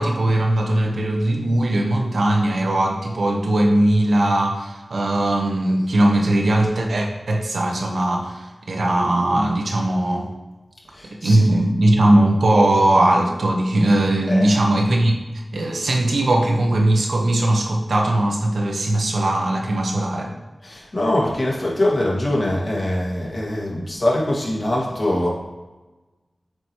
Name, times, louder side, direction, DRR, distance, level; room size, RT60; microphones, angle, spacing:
voice 1, 0.0-10.3 11.1-15.2 15.5-20.3, right 1 dB, 90° right, 1 dB, 0.9 m, -19 dB
voice 2, 10.9-11.4 14.3-14.5 20.6-25.3, left 1 dB, 50° left, -4 dB, 1.8 m, -23 dB
7.7 x 4.4 x 3.1 m, 1.2 s
wide cardioid pair, 75°, 0 cm